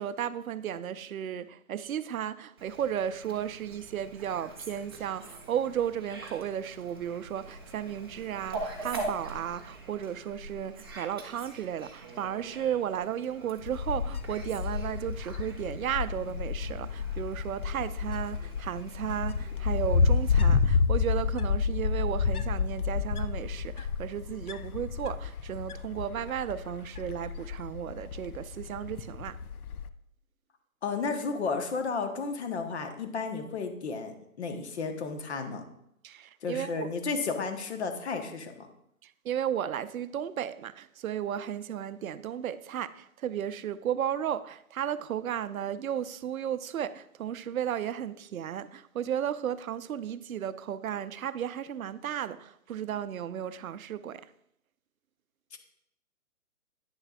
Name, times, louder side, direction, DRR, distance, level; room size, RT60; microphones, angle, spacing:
voice 1, 0.0-29.4 36.0-36.9 39.0-54.3, right 9 dB, 70° right, 0.6 m, -34 dB
Fowl, 2.6-20.6, right 2 dB, 15° right, 0.5 m, -44 dB
Wind, 13.6-29.9, left 5 dB, 80° left, 0.7 m, -30 dB
voice 2, 30.8-35.6 36.4-38.7 55.5-55.6, left 4 dB, 50° left, 1.2 m, -33 dB
9.9 x 6.4 x 2.5 m
hypercardioid pair, 150°, 44 cm